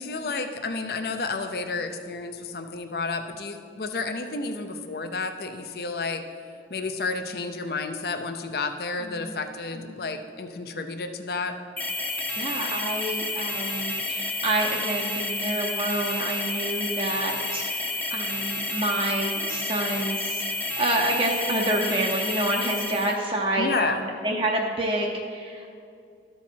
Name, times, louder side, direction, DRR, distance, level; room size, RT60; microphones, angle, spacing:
voice 1, 0.0-6.2 6.7-11.5 23.6-24.0, left 3 dB, 60° left, 7 dB, 0.5 m, -31 dB
sound 1, 11.8-23.2, left 2 dB, 10° left, 0.5 m, -30 dB
voice 2, 12.3-20.4 20.8-25.7, right 1 dB, 30° right, 0 dB, 0.6 m, -28 dB
13.0 x 4.4 x 4.5 m, 2.4 s
head